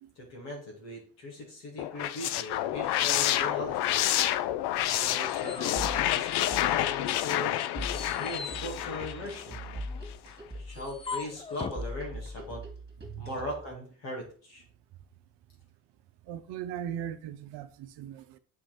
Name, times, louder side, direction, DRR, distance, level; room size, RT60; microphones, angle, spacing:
voice 1, 0.2-4.0 4.8-7.6 7.9-9.6 10.5-12.6 13.2-14.6, left 1 dB, 85° left, 2.6 m, -39 dB
sound 1, 1.8-9.8, left 13 dB, 70° left, 0.6 m, -29 dB
sound 2, 5.2-6.8 7.2-11.9, left 5 dB, 15° left, 0.3 m, -43 dB
sound 3, 5.8-13.8, equal, 25° right, 1.8 m, -41 dB
voice 2, 16.2-18.4, right 10 dB, 75° right, 0.7 m, -39 dB
8.3 x 3.1 x 4.4 m
supercardioid pair, 60°, 41 cm